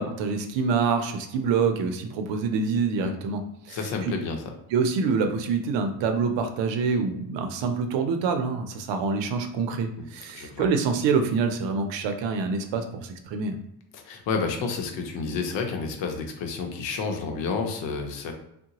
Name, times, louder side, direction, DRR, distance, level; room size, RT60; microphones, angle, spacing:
voice 1, 0.0-3.4 3.7-4.1 4.7-13.6, right 5 dB, 75° right, 6 dB, 0.6 m, -26 dB
voice 2, 3.7-4.4 10.3-10.7 13.9-18.3, left 4 dB, 75° left, 4 dB, 0.8 m, -30 dB
3.7 x 2.2 x 2.9 m, 0.79 s
cardioid pair, 120°, 44 cm